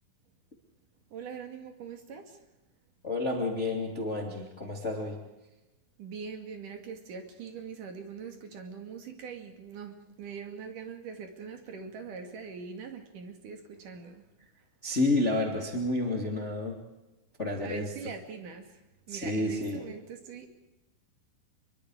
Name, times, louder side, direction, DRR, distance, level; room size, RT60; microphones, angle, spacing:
voice 1, 1.1-2.4 6.0-14.2 17.6-18.7 19.1-20.5, right 6 dB, 50° right, 5 dB, 3.5 m, -42 dB
voice 2, 3.0-5.2 14.8-16.8 17.4-17.9 19.1-19.9, left 2 dB, 20° left, 1 dB, 1.9 m, -30 dB
25.5 x 23.5 x 5.0 m, 1.0 s
omnidirectional pair, 5.5 m